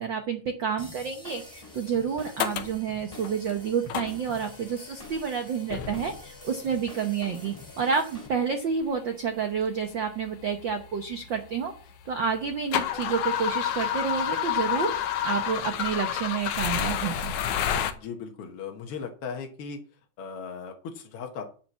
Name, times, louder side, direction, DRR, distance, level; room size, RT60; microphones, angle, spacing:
voice 1, 0.0-11.7 12.0-14.9 15.2-17.3, right 6 dB, 90° right, 5 dB, 1.0 m, -29 dB
sound 1, 0.8-8.3, left 2 dB, 5° right, 2.3 m, -46 dB
sound 2, 1.9-2.0 2.4-2.8 3.2-3.5 3.9-4.5 5.0-5.3 5.7-6.4 7.3-7.4 8.3-8.4 8.8-8.9 9.6-9.7 9.9-11.8 12.2-17.9, left 10 dB, 75° left, 2.4 m, -29 dB
voice 2, 18.0-19.8 20.2-21.4, left 6 dB, 60° left, 2 dB, 1.6 m, -37 dB
11.0 x 4.5 x 7.2 m, 0.40 s
omnidirectional pair, 3.7 m